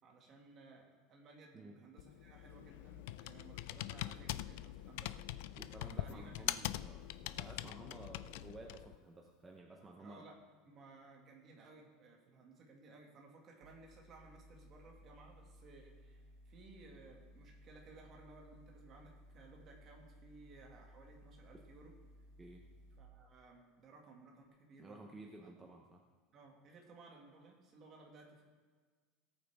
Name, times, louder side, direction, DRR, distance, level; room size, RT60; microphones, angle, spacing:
voice 1, 0.0-5.2 6.0-6.8 10.0-10.4 10.6-21.9 23.0-25.1 25.4-25.7 26.3-28.4, right 3 dB, 25° right, 0 dB, 1.9 m, -59 dB
Computer keyboard, 2.0-9.0, left 15 dB, 65° left, 0.3 m, -43 dB
voice 2, 5.6-10.3 22.4-22.6 24.8-26.0, right 2 dB, 10° right, 1 dB, 0.7 m, -54 dB
sound 1, 13.6-23.0, equal, 65° right, 2.0 m, -60 dB
18.0 x 8.8 x 3.5 m, 1.5 s
supercardioid pair, 175°, 0 cm